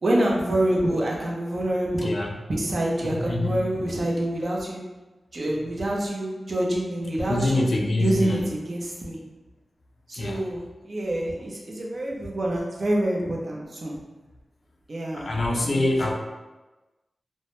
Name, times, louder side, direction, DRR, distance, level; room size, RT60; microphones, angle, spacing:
voice 1, 0.0-2.1 2.5-4.8 5.3-7.7 8.0-9.2 10.1-13.9 14.9-16.1, right 1 dB, 55° right, -2 dB, 0.5 m, -27 dB
voice 2, 3.2-3.5 7.3-8.5 10.1-10.4 15.1-16.1, left 2 dB, 55° left, 0 dB, 0.4 m, -25 dB
2.1 x 2.0 x 2.9 m, 1.1 s
wide cardioid pair, 70°, 0 cm